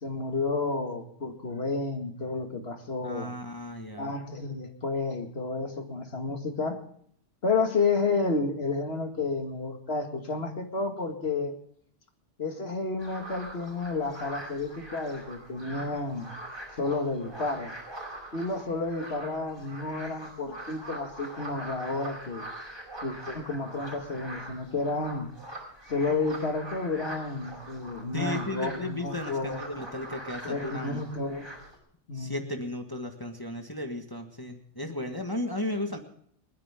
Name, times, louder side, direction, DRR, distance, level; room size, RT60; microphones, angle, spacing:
voice 1, 0.0-3.3 4.0-6.8 7.4-11.5 12.4-16.3 16.8-17.7 18.3-22.5 23.0-25.3 25.9-29.6 30.4-31.5 32.1-32.4, left 3 dB, 55° left, 5 dB, 2.3 m, -31 dB
voice 2, 3.0-4.1 28.1-31.0 32.1-36.0, left 1 dB, 20° left, 4 dB, 1.6 m, -35 dB
sound 1, 13.0-31.7, right 1 dB, 50° right, 5.2 m, -43 dB
30.0 x 10.0 x 3.7 m, 0.65 s
omnidirectional pair, 1.3 m